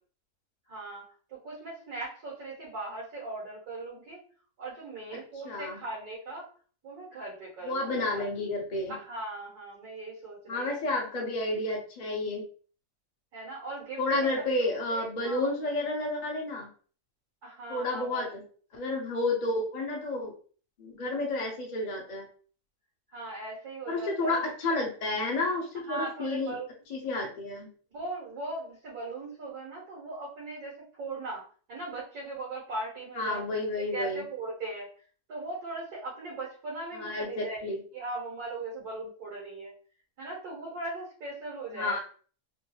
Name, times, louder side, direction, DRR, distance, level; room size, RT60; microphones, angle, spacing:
voice 1, 0.7-4.2 4.6-6.5 6.8-8.3 8.9-10.8 13.3-15.5 17.4-18.4 23.1-24.5 25.7-26.7 27.9-33.4 33.9-34.9 35.3-37.6 37.9-39.7 40.2-42.0, right 2 dB, 85° right, -5 dB, 1.7 m, -39 dB
voice 2, 5.4-5.8 7.6-8.9 10.5-12.4 14.0-16.7 17.7-18.4 18.7-20.3 20.8-22.3 23.9-26.6 26.9-27.7 33.2-34.2 37.0-37.8 41.7-42.0, left 2 dB, 55° left, -1 dB, 0.4 m, -31 dB
3.5 x 2.8 x 2.3 m, 0.42 s
omnidirectional pair, 1.6 m